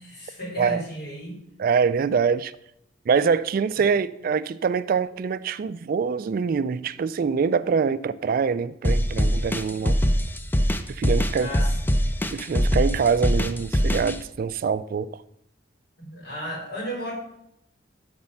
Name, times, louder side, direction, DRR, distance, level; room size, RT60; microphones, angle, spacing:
voice 1, 0.0-1.4 11.4-12.0 16.0-17.1, equal, 60° left, 4.2 m, -34 dB
voice 2, 1.6-2.5 3.1-10.0 10.9-11.5 12.3-15.1, right 6 dB, 50° right, 0.3 m, -24 dB
sound 1, 8.8-14.2, equal, 10° left, 0.5 m, -22 dB
12.5 x 4.3 x 5.7 m
head